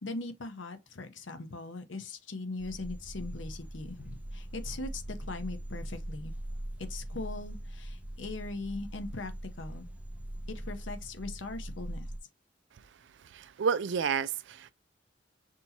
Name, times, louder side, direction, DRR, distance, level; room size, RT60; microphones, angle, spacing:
voice 1, 0.0-6.3 6.8-9.3 9.6-9.9 10.5-12.1, left 3 dB, 85° left, 0.8 m, -40 dB
sound 1, 2.6-12.2, right 1 dB, 10° right, 0.6 m, -41 dB
voice 2, 13.3-14.7, right 6 dB, 70° right, 0.4 m, -30 dB
6.1 x 2.8 x 2.9 m
head